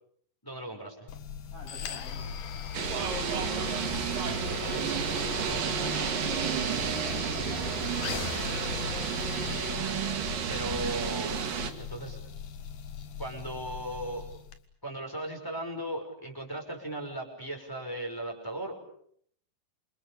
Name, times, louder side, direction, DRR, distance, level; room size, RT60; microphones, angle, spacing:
voice 1, 0.4-1.1 4.1-4.8 10.5-11.5 11.8-12.2 13.2-14.3 14.8-18.7, right 1 dB, 5° left, 3 dB, 5.9 m, -37 dB
sound 1, 1.1-14.6, left 7 dB, 65° left, 3.1 m, -39 dB
voice 2, 1.5-2.4 6.1-8.2, left 1 dB, 50° left, -4 dB, 9.1 m, -47 dB
sound 2, 2.7-11.7, right 7 dB, 70° right, 3.8 m, -31 dB
28.0 x 26.5 x 6.9 m, 0.65 s
omnidirectional pair, 4.0 m